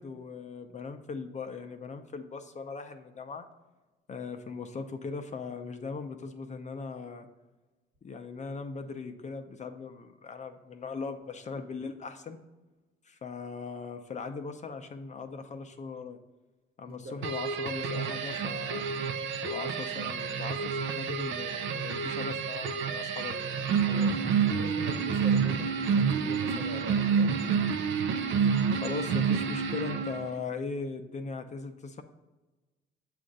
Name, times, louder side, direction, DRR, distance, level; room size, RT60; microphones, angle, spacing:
voice 1, 0.0-3.5 4.1-7.3 8.0-12.4 13.0-16.2 16.8-18.9 19.4-23.7 28.7-32.0, left 4 dB, 35° left, 6 dB, 0.6 m, -39 dB
voice 2, 16.8-17.2 23.8-27.6, right 1 dB, 50° right, 3 dB, 1.2 m, -42 dB
sound 1, 17.2-30.4, right 6 dB, 75° right, 0.5 m, -29 dB
7.5 x 2.5 x 5.3 m, 1.2 s
cardioid pair, 90°, 20 cm